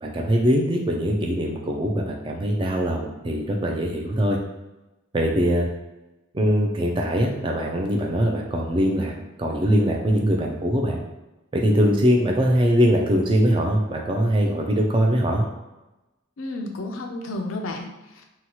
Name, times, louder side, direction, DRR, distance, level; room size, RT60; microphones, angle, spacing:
voice 1, 0.0-4.4 5.1-5.7 6.3-9.1 9.4-11.0 11.5-15.5, equal, 25° right, 0 dB, 0.3 m, -22 dB
voice 2, 16.4-18.2, left 2 dB, 80° left, 3 dB, 0.4 m, -32 dB
2.8 x 2.3 x 2.8 m, 1.0 s
head